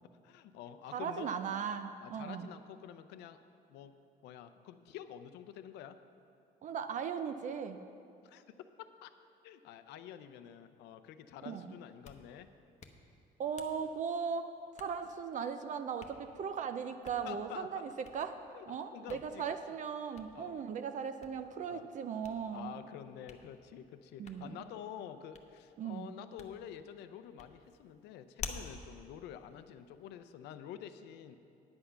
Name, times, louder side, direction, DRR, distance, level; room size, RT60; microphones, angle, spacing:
voice 1, 0.2-1.3 2.0-3.4 3.7-3.9 4.2-6.0 8.2-8.5 9.0-9.1 9.4-12.5 17.2-17.8 18.5-18.7 18.9-19.8 20.3-20.6 21.7-21.9 22.5-31.4, left 10 dB, 85° left, 10 dB, 0.6 m, -48 dB
voice 2, 0.9-2.5 6.6-7.8 11.4-11.7 13.4-18.4 18.7-22.7 24.2-24.6 25.8-26.1, right 6 dB, 50° right, 8 dB, 0.5 m, -38 dB
Hands, 11.8-30.3, left 5 dB, 45° left, 0.8 m, -53 dB
9.7 x 7.9 x 5.7 m, 2.6 s
cardioid pair, 110°, 17 cm